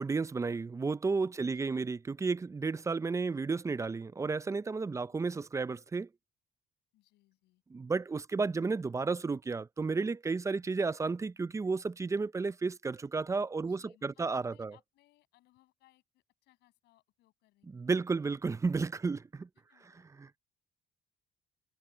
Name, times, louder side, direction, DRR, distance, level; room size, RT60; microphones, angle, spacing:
voice 1, 0.0-6.1 7.7-14.7 17.7-19.5 20.2-20.4, right 4 dB, 20° right, 0.5 m, -32 dB
voice 2, 1.4-1.8 5.0-5.3 6.9-7.6 10.6-10.7 13.6-18.3 19.7-20.0, left 17 dB, 85° left, 7.2 m, -67 dB
cardioid pair, 110°, 17 cm